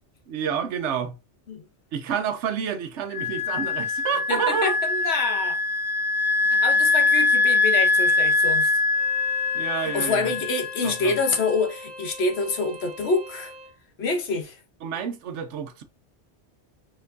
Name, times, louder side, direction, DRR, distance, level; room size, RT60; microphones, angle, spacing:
voice 1, 0.3-1.2 1.9-4.7 9.5-10.3 10.8-11.2 14.8-15.8, right 8 dB, 85° right, 1.0 m, -29 dB
Wind instrument woodwind instrument, 3.1-11.4, left 3 dB, 50° left, 0.8 m, -23 dB
voice 2, 4.3-5.6 6.5-8.7 9.9-13.5 14.0-14.6, left 3 dB, 70° left, 1.2 m, -26 dB
Bowed string instrument, 8.9-13.7, left 1 dB, 65° right, 1.3 m, -42 dB
4.3 x 3.7 x 2.5 m
omnidirectional pair, 1.2 m